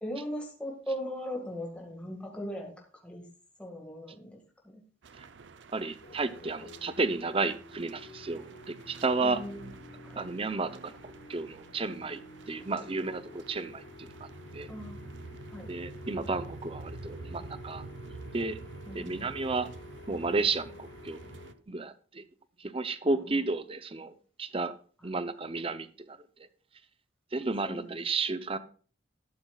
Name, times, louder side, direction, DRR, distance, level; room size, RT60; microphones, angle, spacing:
voice 1, 0.0-2.7 3.0-3.2 3.6-4.8 9.2-9.7 10.0-10.2 14.7-15.0 15.5-15.7 18.9-19.2 23.1-23.2 27.6-28.0, equal, 5° left, -2 dB, 1.8 m, -39 dB
sound 1, 5.0-21.5, right 3 dB, 70° right, 0.6 m, -48 dB
voice 2, 5.7-9.4 10.2-10.9 11.3-14.3 14.5-14.7 15.7-17.9 18.3-18.6 18.9-19.7 20.1-21.2 21.7-22.2 22.6-24.1 24.4-24.8 25.0-26.2 27.3-28.6, right 3 dB, 30° right, 13 dB, 0.6 m, -32 dB
sound 2, 6.0-21.5, left 2 dB, 70° left, 2.1 m, -50 dB
12.5 x 11.5 x 2.3 m, 0.41 s
head